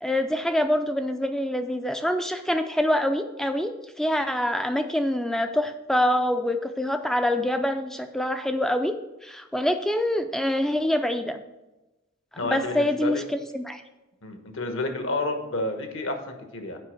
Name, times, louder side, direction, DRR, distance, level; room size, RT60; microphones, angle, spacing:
voice 1, 0.0-9.0 9.2-11.4 12.4-13.8, left 1 dB, ahead, 7 dB, 0.4 m, -25 dB
voice 2, 12.4-13.2 14.2-16.8, left 2 dB, 65° left, 5 dB, 1.2 m, -30 dB
8.2 x 5.2 x 6.4 m, 1.0 s
head